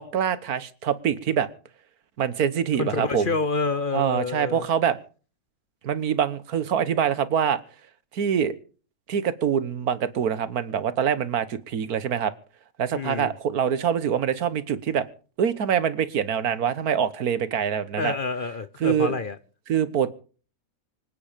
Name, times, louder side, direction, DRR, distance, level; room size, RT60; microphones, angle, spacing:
voice 1, 0.0-1.5 2.2-3.3 3.9-5.0 5.8-7.6 8.1-8.5 9.1-12.3 12.8-15.0 15.4-18.1 18.8-19.1 19.7-20.1, right 8 dB, 85° right, 1.6 m, -24 dB
voice 2, 2.8-4.7 12.9-13.3 18.0-19.4, left 4 dB, 40° left, 1.0 m, -28 dB
25.0 x 9.5 x 5.1 m
omnidirectional pair, 1.5 m